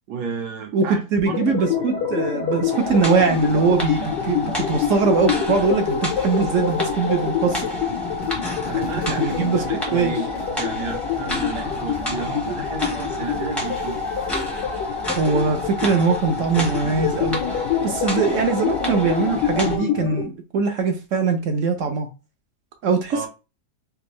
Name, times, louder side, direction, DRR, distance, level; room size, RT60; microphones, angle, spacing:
voice 1, 0.1-1.7 8.4-14.0 23.1-23.3, right 6 dB, 80° right, 1.3 m, -32 dB
voice 2, 1.1-7.7 9.2-9.6 9.9-10.1 15.1-17.4 17.8-22.1 22.8-23.3, right 5 dB, 65° right, 0.8 m, -21 dB
sound 1, 1.2-20.2, left 8 dB, 90° left, 1.5 m, -27 dB
sound 2, 2.7-19.8, left 2 dB, ahead, 0.5 m, -30 dB
sound 3, 2.8-19.8, left 1 dB, 55° left, 0.6 m, -40 dB
3.6 x 2.5 x 3.0 m
omnidirectional pair, 1.8 m